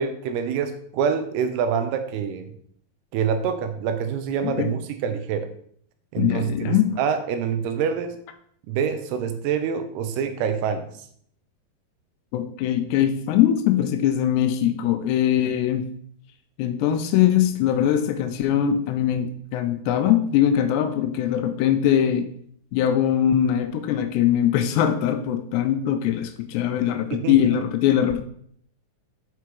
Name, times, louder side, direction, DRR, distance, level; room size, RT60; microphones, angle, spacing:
voice 1, 0.0-2.5 3.1-5.5 6.1-8.2 8.7-10.9 27.1-27.4, right 7 dB, 80° right, 8 dB, 2.6 m, -26 dB
voice 2, 6.2-7.0 12.3-15.9 16.6-22.3 22.7-28.2, left 10 dB, 85° left, 8 dB, 2.7 m, -21 dB
6.8 x 4.7 x 4.6 m, 0.64 s
omnidirectional pair, 4.8 m